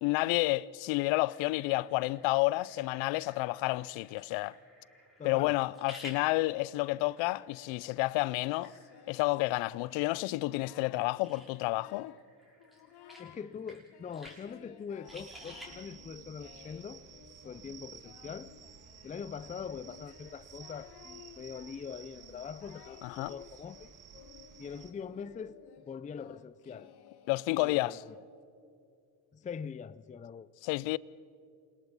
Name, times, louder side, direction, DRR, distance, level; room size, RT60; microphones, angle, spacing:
voice 1, 0.0-4.6 5.2-8.7 9.1-12.1 23.0-23.3 27.3-28.0 30.6-31.0, left 20 dB, 75° left, 0.6 m, -30 dB
sound 1, 1.3-15.7, equal, ahead, 6.4 m, -55 dB
voice 2, 5.2-5.6 13.2-17.0 17.4-18.5 19.0-23.9 24.6-26.9 27.6-28.1 29.3-30.5, left 6 dB, 15° left, 0.4 m, -43 dB
Singing, 8.4-9.9 10.3-11.1 11.5-12.3 12.6-13.5 13.9-28.4, left 10 dB, 55° left, 1.3 m, -57 dB
sound 2, 15.0-24.9, right 8 dB, 45° right, 1.6 m, -53 dB
28.0 x 18.5 x 5.5 m
supercardioid pair, 80°, 46 cm